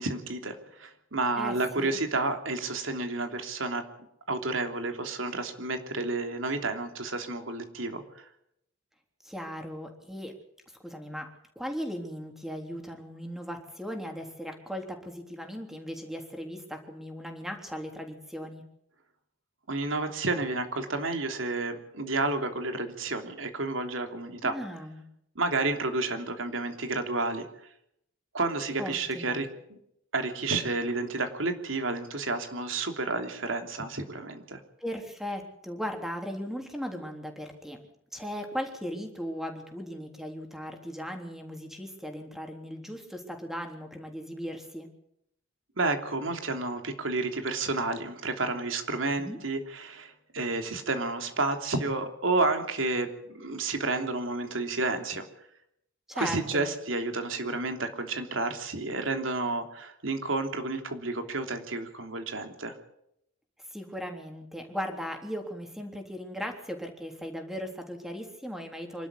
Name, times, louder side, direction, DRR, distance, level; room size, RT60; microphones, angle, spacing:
voice 1, 0.0-3.8 4.3-8.2 19.7-24.5 25.3-27.4 28.3-29.8 30.1-34.6 45.8-53.1 53.3-55.2 56.1-62.7, right 3 dB, 90° right, 6 dB, 3.2 m, -31 dB
voice 2, 1.4-2.0 9.2-10.3 10.8-11.3 11.6-18.6 24.4-25.0 28.8-29.4 34.8-37.8 38.1-44.9 49.2-49.4 56.1-56.7 63.7-69.1, equal, ahead, 3 dB, 3.6 m, -37 dB
26.0 x 12.5 x 8.4 m, 0.75 s
head